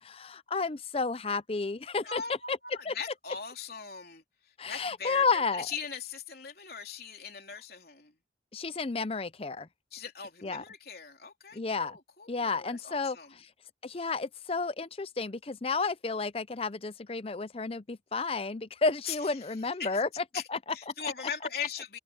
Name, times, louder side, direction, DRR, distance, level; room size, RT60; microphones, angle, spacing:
voice 1, 0.0-2.2 2.5-2.6 2.9-3.0 4.6-5.7 8.5-9.7 10.4-10.6 11.5-12.0 12.3-13.5 13.8-20.2 20.5-20.9, left 4 dB, 30° left, 0.6 m, -31 dB
voice 2, 2.0-4.2 4.7-8.1 9.9-13.3 19.1-19.2 19.8-20.0 20.3-20.4 20.7-22.0, left 6 dB, 55° left, 3.7 m, -40 dB
open air
head